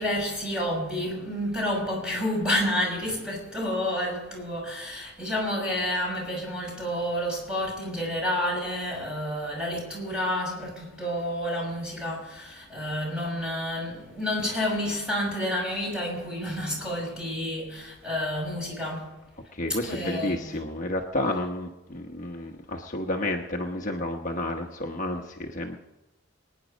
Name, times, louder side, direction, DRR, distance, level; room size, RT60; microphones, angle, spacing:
voice 1, 0.0-19.2 19.7-20.6, left 1 dB, 5° right, 6.0 m, -30 dB
voice 2, 19.5-25.8, left 1 dB, 40° left, 1.1 m, -31 dB
24.0 x 10.0 x 5.3 m
head